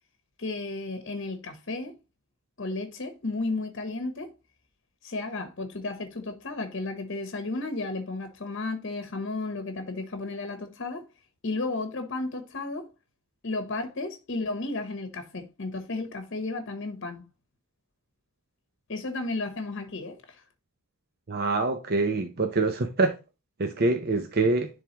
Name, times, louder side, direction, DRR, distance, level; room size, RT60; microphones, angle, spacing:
voice 1, 0.4-1.9 2.6-4.3 5.0-11.0 11.4-12.9 13.4-17.2 18.9-20.2, left 3 dB, 55° left, 0.9 m, -33 dB
voice 2, 21.3-23.1 23.6-24.7, right 3 dB, 45° right, 0.7 m, -25 dB
10.5 x 3.5 x 2.9 m
head